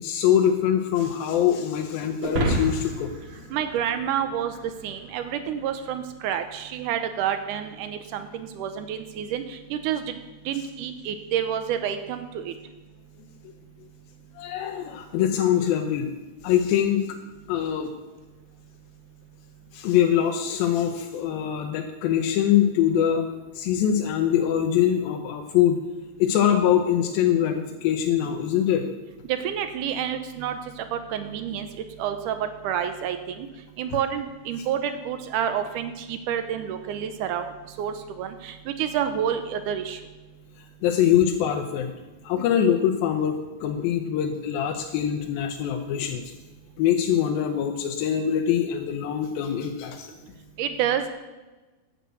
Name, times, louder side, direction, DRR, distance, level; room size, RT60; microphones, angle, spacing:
voice 1, 0.0-3.1 14.4-16.1 16.4-17.0 17.5-17.9 19.7-23.2 23.6-25.8 26.2-28.9 40.8-41.9 42.2-46.3 46.8-50.1, left 10 dB, 80° left, 3 dB, 2.4 m, -23 dB
sound 1, 2.2-4.7, right 1 dB, 55° right, 1.7 m, -29 dB
voice 2, 3.5-4.5 4.8-10.1 10.5-12.5 29.3-30.6 30.9-31.7 32.0-33.5 33.8-37.5 37.8-40.0 50.6-51.1, right 9 dB, 80° right, 8 dB, 1.9 m, -29 dB
9.1 x 6.3 x 8.1 m, 1.2 s
omnidirectional pair, 4.3 m